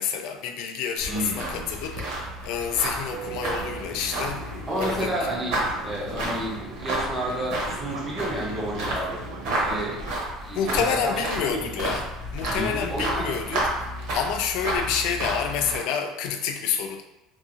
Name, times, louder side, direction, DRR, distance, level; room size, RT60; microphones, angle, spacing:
voice 1, 0.0-5.1 10.5-13.7 14.1-17.0, left 7 dB, 65° left, 5 dB, 0.3 m, -28 dB
sound 1, 1.0-15.8, right 1 dB, 60° right, 0.8 m, -31 dB
voice 2, 1.1-1.7 4.7-9.2 9.5-10.0 10.4-11.2 11.5-11.9 12.5-13.3, right 1 dB, 10° right, -5 dB, 0.6 m, -31 dB
Fixed-wing aircraft airplane, 3.1-10.1, right 4 dB, 85° right, 0.4 m, -39 dB
2.6 x 2.3 x 2.7 m, 0.99 s
cardioid pair, 165°, 0 cm